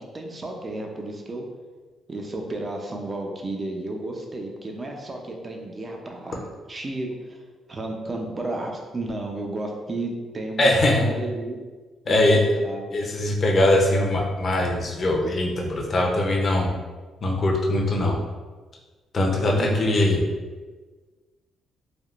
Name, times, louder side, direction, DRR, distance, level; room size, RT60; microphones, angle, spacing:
voice 1, 0.0-1.5 2.1-7.4 7.7-11.6 12.1-13.0 19.5-19.9, right 2 dB, 30° right, 1 dB, 0.5 m, -32 dB
voice 2, 10.6-11.1 12.1-12.4 12.9-16.7 17.2-18.2 19.1-20.2, left 1 dB, 45° left, -1 dB, 0.6 m, -21 dB
3.4 x 2.3 x 2.4 m, 1.4 s
cardioid pair, 90°, 0 cm